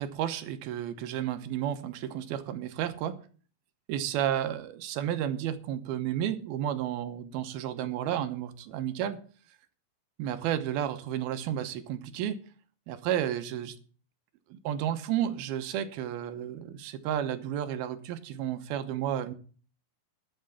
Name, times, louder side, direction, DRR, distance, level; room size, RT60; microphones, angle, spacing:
voice 1, 0.0-3.2 3.9-9.2 10.2-12.4 12.9-13.8 14.5-19.3, right 10 dB, 90° right, 10 dB, 2.9 m, -32 dB
12.5 x 6.6 x 7.1 m, 0.41 s
omnidirectional pair, 4.3 m